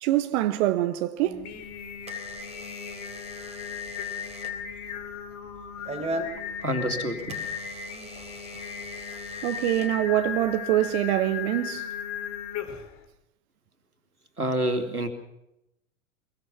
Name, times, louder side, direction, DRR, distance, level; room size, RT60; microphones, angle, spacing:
voice 1, 0.0-1.4 9.4-11.8, right 14 dB, 50° right, 1.3 m, -24 dB
Singing, 1.2-13.0, left 8 dB, 40° left, 3.7 m, -36 dB
Door / Alarm, 1.3-10.6, right 2 dB, 15° right, 3.7 m, -41 dB
voice 2, 6.6-7.4 14.4-15.1, right 1 dB, 90° right, 3.0 m, -28 dB
23.0 x 23.0 x 5.9 m
figure-of-eight pair, 85°, 43 cm